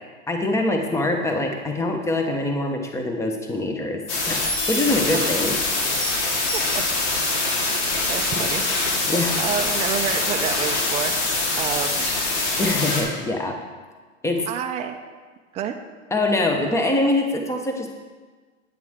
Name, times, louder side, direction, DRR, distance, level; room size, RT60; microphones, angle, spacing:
voice 1, 0.3-4.4 4.7-5.6 8.4-8.5 9.1-9.3 12.6-13.6 14.2-14.5 16.1-17.9, left 2 dB, 5° left, 3 dB, 1.0 m, -24 dB
sound 1, 4.1-13.0, left 2 dB, 50° left, 2.3 m, -24 dB
voice 2, 6.5-6.8 8.1-8.7 9.1-11.1 11.6-12.0 14.5-15.0 15.5-15.7, right 9 dB, 15° right, 4 dB, 0.5 m, -29 dB
9.2 x 8.9 x 3.6 m, 1.4 s
hypercardioid pair, 125°, 39 cm